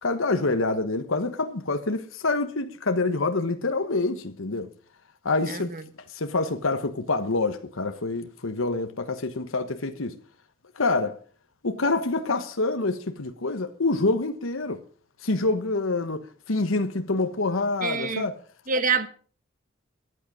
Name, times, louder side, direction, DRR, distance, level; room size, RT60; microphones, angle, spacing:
voice 1, 0.0-4.7 5.2-5.7 6.1-10.2 10.7-11.2 11.6-14.8 15.2-18.4, left 3 dB, 75° left, 1.2 m, -26 dB
voice 2, 5.5-5.8 17.8-18.3 18.7-19.1, right 5 dB, 40° right, 1.3 m, -26 dB
14.0 x 11.0 x 6.1 m
head